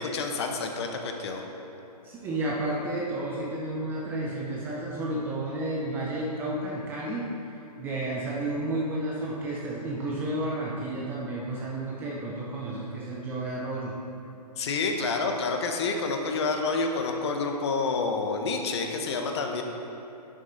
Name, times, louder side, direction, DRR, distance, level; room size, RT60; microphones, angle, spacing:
voice 1, 0.0-1.4 14.6-19.6, left 4 dB, 40° left, 3 dB, 0.9 m, -28 dB
voice 2, 2.0-7.3 7.8-14.0, right 1 dB, 10° right, -4 dB, 0.5 m, -31 dB
10.5 x 6.5 x 3.9 m, 2.8 s
hypercardioid pair, 155°, 21 cm